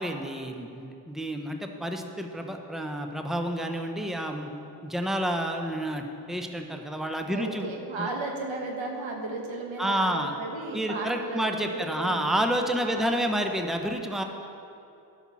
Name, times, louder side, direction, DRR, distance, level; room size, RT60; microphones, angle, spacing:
voice 1, 0.0-4.5 4.8-7.7 8.0-8.1 9.8-10.3 10.7-14.2, equal, ahead, 4 dB, 1.0 m, -29 dB
voice 2, 7.3-12.2 12.8-13.1, right 3 dB, 80° right, 1 dB, 1.4 m, -35 dB
10.5 x 5.8 x 6.2 m, 2.7 s
supercardioid pair, 45°, 45 cm